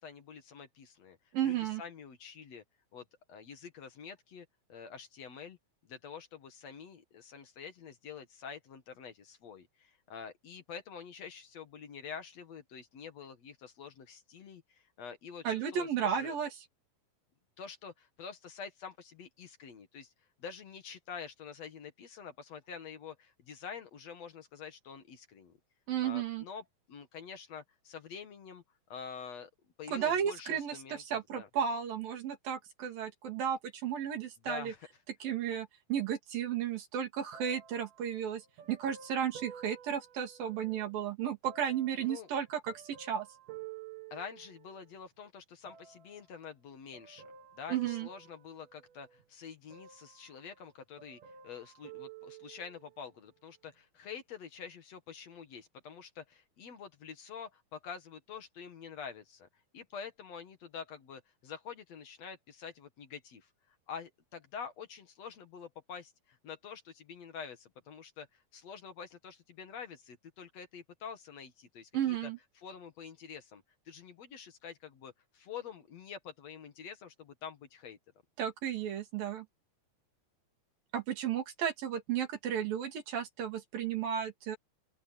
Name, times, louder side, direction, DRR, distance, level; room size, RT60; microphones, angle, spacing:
voice 1, 0.0-2.6 2.9-5.6 5.8-16.4 17.6-20.1 20.4-25.5 26.0-28.6 28.9-29.5 29.8-31.5 34.4-34.9 42.0-42.3 44.1-47.3 47.5-59.5 59.7-72.2 72.6-78.0, left 6 dB, 55° left, 2.6 m, -47 dB
voice 2, 1.3-1.8 15.4-16.5 25.9-26.4 29.9-34.7 35.2-43.3 47.7-48.1 71.9-72.4 78.4-79.5 80.9-84.6, right 9 dB, 90° right, 4.6 m, -34 dB
sound 1, 37.3-40.9 41.5-45.0 45.7-46.3 46.9-49.3 49.7-50.7 51.0-53.0 53.7-53.8, right 9 dB, 70° right, 3.8 m, -52 dB
open air
omnidirectional pair, 3.9 m